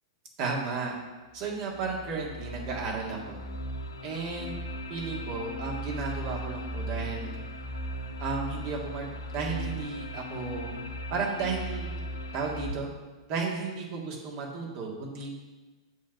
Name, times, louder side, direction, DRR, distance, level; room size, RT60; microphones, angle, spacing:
voice 1, 0.4-0.9 1.3-3.4 4.0-4.5 4.9-7.3 8.2-9.1 9.3-10.8 11.1-11.9 12.3-12.9 13.3-15.4, right 4 dB, 50° right, -1 dB, 1.9 m, -33 dB
sound 1, 1.4-12.7, equal, 85° left, 0.7 m, -37 dB
8.2 x 3.2 x 6.1 m, 1.2 s
hypercardioid pair, 105°, 2 cm